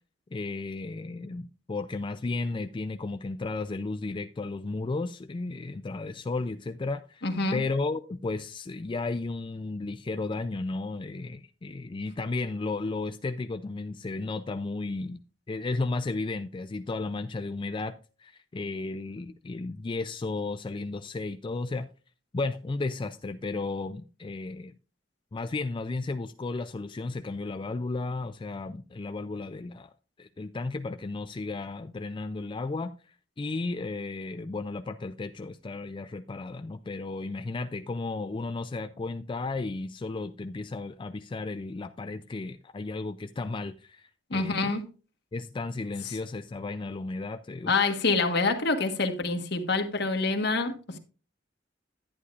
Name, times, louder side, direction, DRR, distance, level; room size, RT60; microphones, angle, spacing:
voice 1, 0.3-15.2 15.5-21.9 22.3-24.7 25.3-29.9 30.2-32.9 33.4-44.8 45.3-47.8, left 3 dB, 25° left, 0.4 m, -34 dB
voice 2, 7.2-7.6 44.3-44.8 47.7-51.0, left 3 dB, 65° left, 1.4 m, -26 dB
11.0 x 9.6 x 2.5 m
head